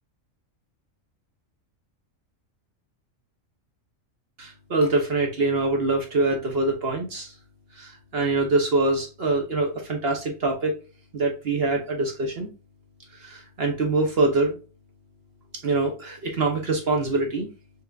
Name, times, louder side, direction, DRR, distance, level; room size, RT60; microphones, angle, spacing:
voice 1, 4.4-7.3 7.8-10.7 11.1-12.5 13.2-14.6 15.6-17.5, right 2 dB, 55° right, 1 dB, 1.0 m, -24 dB
4.7 x 3.4 x 2.4 m, 0.33 s
omnidirectional pair, 1.4 m